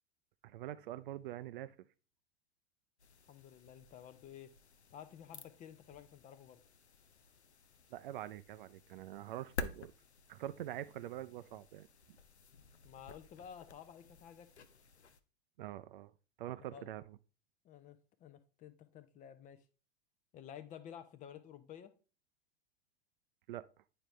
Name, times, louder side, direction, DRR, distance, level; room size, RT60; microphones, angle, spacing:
voice 1, 0.4-1.8 7.9-9.9 10.3-12.2 15.6-16.1 16.4-17.2 23.5-23.7, right 13 dB, 55° right, 0.4 m, -45 dB
sound 1, 3.0-15.2, left 4 dB, 85° left, 0.5 m, -51 dB
voice 2, 3.3-4.5 4.9-6.6 12.8-14.7 16.7-16.9 17.6-19.6 20.3-21.9, left 9 dB, 25° left, 0.5 m, -52 dB
8.8 x 4.9 x 3.1 m
figure-of-eight pair, 90°, 32 cm